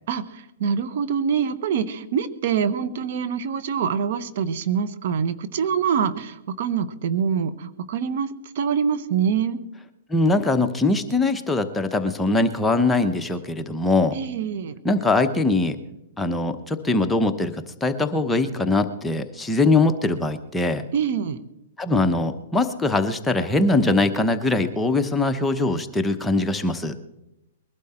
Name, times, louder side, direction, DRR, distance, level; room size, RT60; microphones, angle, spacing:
voice 1, 0.6-8.3 8.5-9.6 14.1-14.8 20.9-21.4, right 7 dB, 60° right, 12 dB, 1.1 m, -25 dB
voice 2, 10.1-14.1 14.8-15.8 16.2-17.5 17.8-20.8 21.8-26.9, left 2 dB, 5° left, 6 dB, 1.0 m, -22 dB
21.5 x 11.5 x 4.4 m, 0.90 s
hypercardioid pair, 130°, 0 cm